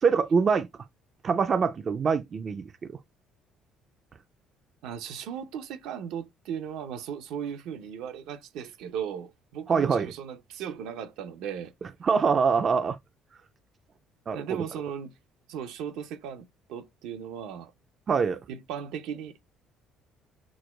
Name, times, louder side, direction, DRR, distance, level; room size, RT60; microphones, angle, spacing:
voice 1, 0.0-0.7 1.2-3.0 9.7-10.1 12.0-13.0 14.3-14.6 18.1-18.4, right 5 dB, 35° right, 0.3 m, -24 dB
voice 2, 4.8-11.7 14.3-15.2 15.5-17.7 18.5-19.4, right 8 dB, 80° right, 0.6 m, -37 dB
6.1 x 2.3 x 2.2 m
cardioid pair, 120°, 0 cm